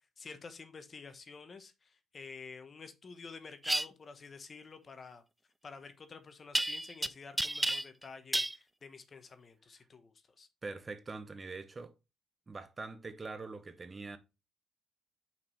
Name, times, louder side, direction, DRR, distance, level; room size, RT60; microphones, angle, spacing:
voice 1, 0.2-5.2 5.6-10.5, left 5 dB, 40° left, 1.0 m, -50 dB
sound 1, 3.6-3.9 6.6-7.1 7.4-8.0 8.3-8.6, right 1 dB, 10° right, 0.4 m, -31 dB
voice 2, 10.6-11.9 12.5-14.2, right 3 dB, 30° right, 0.9 m, -43 dB
5.7 x 4.9 x 4.1 m
cardioid pair, 90°, 0 cm